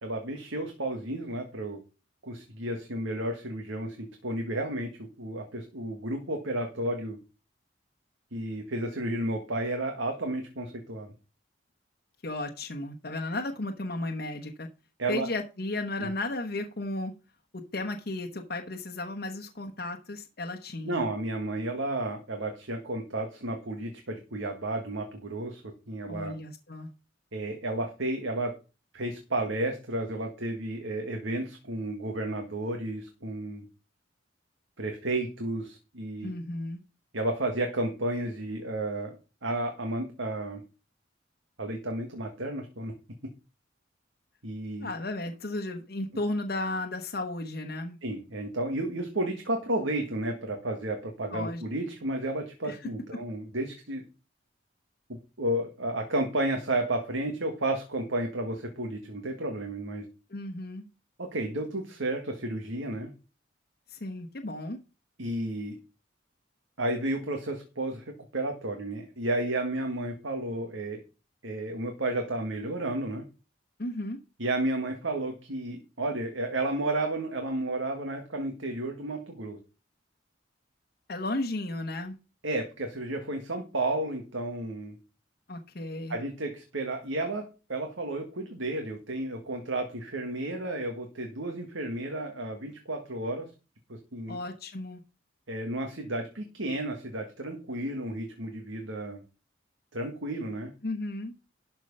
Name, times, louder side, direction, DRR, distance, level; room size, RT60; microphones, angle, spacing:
voice 1, 0.0-1.8 2.2-4.9 5.2-7.2 8.3-11.1 15.0-15.3 20.9-26.3 27.3-28.5 28.9-33.7 34.8-36.3 37.1-39.2 39.4-40.6 41.6-42.9 44.4-44.9 48.0-54.0 55.4-60.1 61.2-63.1 65.2-65.8 66.8-68.0 68.3-71.0 71.4-73.3 74.4-79.6 82.4-84.9 86.1-93.5 93.9-94.4 95.5-99.2 99.9-100.7, right 1 dB, 80° right, 4 dB, 1.8 m, -32 dB
voice 2, 12.2-14.7 15.1-17.1 17.5-21.1 26.1-26.9 36.2-36.8 44.8-48.0 51.3-51.6 52.6-53.2 60.3-60.9 63.9-64.8 73.8-74.2 81.1-82.2 85.5-86.2 94.3-95.0 100.8-101.3, left 2 dB, 50° left, 3 dB, 1.0 m, -34 dB
12.0 x 4.6 x 5.4 m, 0.31 s
head